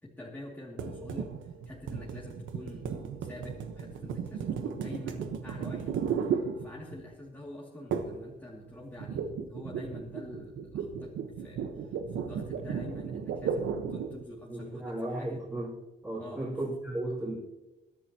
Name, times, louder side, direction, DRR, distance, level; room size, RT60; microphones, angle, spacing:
voice 1, 0.0-15.4 16.2-16.5, left 1 dB, 10° left, -5 dB, 2.5 m, -46 dB
sound 1, 0.8-7.1 7.9-8.3 8.5-14.2, right 7 dB, 75° right, 1.2 m, -35 dB
voice 2, 14.4-15.7 16.0-17.4, right 1 dB, 15° right, -8 dB, 5.1 m, -35 dB
21.5 x 11.0 x 2.9 m, 1.1 s
cardioid pair, 90°, 20 cm